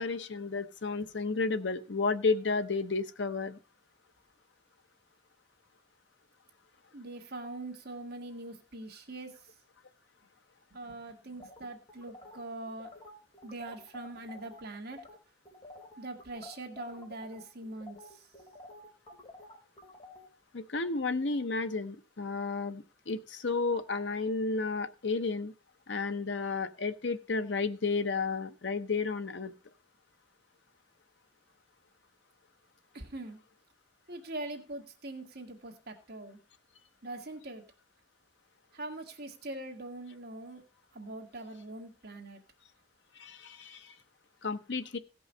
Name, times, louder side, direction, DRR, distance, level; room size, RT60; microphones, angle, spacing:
voice 1, 0.0-3.6 20.5-25.5 25.9-29.5 43.2-43.9 44.4-45.0, left 4 dB, 75° left, 9 dB, 0.8 m, -32 dB
voice 2, 6.9-9.3 10.7-12.9 13.4-15.1 16.0-18.2 32.9-33.4 34.1-36.4 37.0-37.6 38.7-40.6 40.9-42.4, right 2 dB, 60° right, 3 dB, 1.7 m, -42 dB
sound 1, 11.4-14.6 14.9-15.2 15.5-20.3, left 2 dB, 30° left, 2.7 m, -51 dB
16.5 x 5.5 x 5.4 m, 0.35 s
head